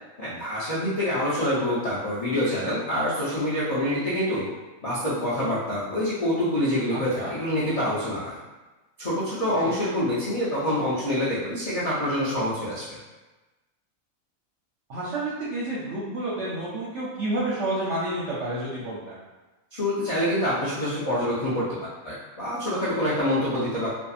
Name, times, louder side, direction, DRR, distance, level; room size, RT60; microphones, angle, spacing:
voice 1, 0.2-4.4 4.8-8.4 9.0-13.0 19.7-23.9, left 1 dB, 50° left, -10 dB, 0.4 m, -26 dB
voice 2, 6.9-7.3 9.6-9.8 14.9-19.2 23.5-23.6, right 1 dB, 65° right, -8 dB, 0.8 m, -30 dB
2.6 x 2.3 x 2.3 m, 1.1 s
omnidirectional pair, 1.5 m